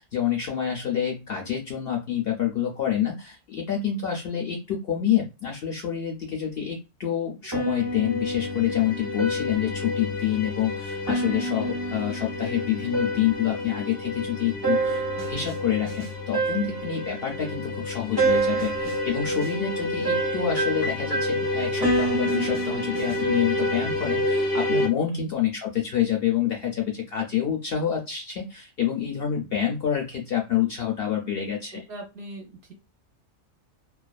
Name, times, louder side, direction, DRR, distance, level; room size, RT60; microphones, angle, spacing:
voice 1, 0.0-31.8, left 9 dB, 65° left, 1 dB, 0.6 m, -27 dB
sound 1, 7.5-24.9, equal, 25° right, 0.6 m, -27 dB
voice 2, 31.7-32.7, right 4 dB, 60° right, 2 dB, 0.8 m, -40 dB
2.4 x 2.2 x 2.3 m, 0.28 s
omnidirectional pair, 1.4 m